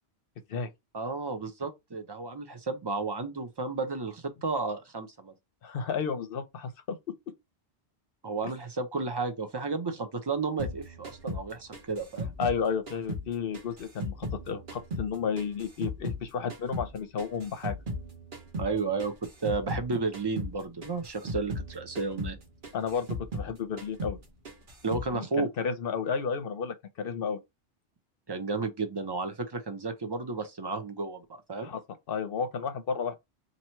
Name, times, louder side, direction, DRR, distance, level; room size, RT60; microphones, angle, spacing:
voice 1, 0.9-5.3 8.2-12.3 18.6-19.1 19.4-22.4 24.8-25.5 28.3-31.7, right 4 dB, 30° right, 0.5 m, -32 dB
voice 2, 5.6-7.0 12.4-17.8 22.7-24.2 25.1-27.4 31.6-31.8 32.1-33.2, left 6 dB, 60° left, 0.8 m, -32 dB
sound 1, 10.6-13.3 13.5-16.2 16.5-19.9 20.1-20.5 20.8-23.5 23.8-24.2 24.4-25.1, equal, 50° right, 1.1 m, -37 dB
2.9 x 2.7 x 4.4 m
omnidirectional pair, 1.2 m